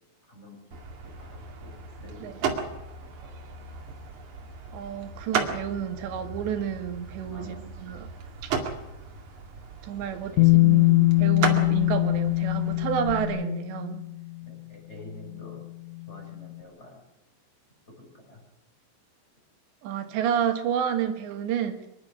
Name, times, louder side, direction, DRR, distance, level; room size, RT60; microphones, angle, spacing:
voice 1, 0.3-0.8 1.0-3.4 3.6-3.7 7.3-7.8 10.3-10.5 10.8-10.9 14.4-15.7 16.1-17.0 17.9-18.4, left 2 dB, 15° left, 0 dB, 6.8 m, -48 dB
sound 1, 0.7-13.2, right 5 dB, 50° right, 3.2 m, -35 dB
voice 2, 4.7-8.1 8.4-8.5 9.8-14.1 19.8-21.9, right 8 dB, 80° right, 6 dB, 3.6 m, -30 dB
Bass guitar, 10.4-14.3 15.4-15.5, left 22 dB, 80° left, 3.5 m, -22 dB
26.0 x 11.5 x 9.7 m, 0.85 s
omnidirectional pair, 5.0 m